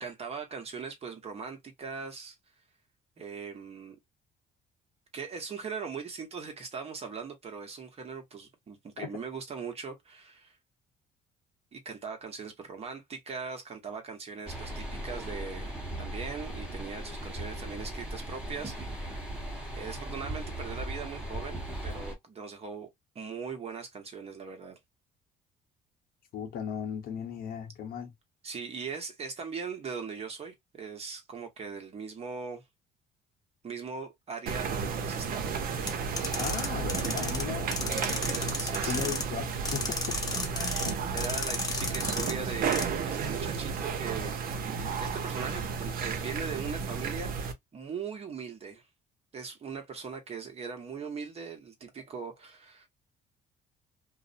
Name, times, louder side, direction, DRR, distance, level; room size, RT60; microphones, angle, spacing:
voice 1, 0.0-2.3 3.2-4.0 5.1-10.5 11.7-19.1 19.7-22.9 23.1-24.8 28.4-32.6 33.6-35.5 38.6-39.1 41.1-44.4 45.0-48.8 49.3-52.9, right 5 dB, 35° right, 1.0 m, -40 dB
sound 1, 14.5-22.1, right 1 dB, 5° right, 1.1 m, -38 dB
voice 2, 26.3-28.1 36.4-37.9 38.8-40.2, left 8 dB, 65° left, 0.9 m, -37 dB
sound 2, 34.5-47.5, right 6 dB, 60° right, 0.7 m, -33 dB
sound 3, 35.9-37.4 37.7-39.2 39.7-40.9 41.2-42.3 42.7-42.9, left 3 dB, 20° left, 0.7 m, -34 dB
2.5 x 2.0 x 2.5 m
cardioid pair, 110°, 17 cm